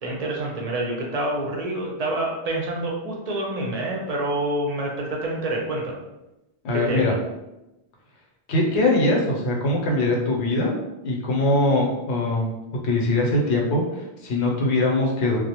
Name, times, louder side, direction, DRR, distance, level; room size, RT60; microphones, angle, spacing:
voice 1, 0.0-6.0 6.7-7.1, right 1 dB, 50° right, -2 dB, 0.5 m, -27 dB
voice 2, 6.6-7.1 8.5-10.7 11.0-12.5 12.8-15.4, left 2 dB, 80° left, -1 dB, 0.9 m, -22 dB
2.3 x 2.1 x 2.8 m, 0.95 s
omnidirectional pair, 1.1 m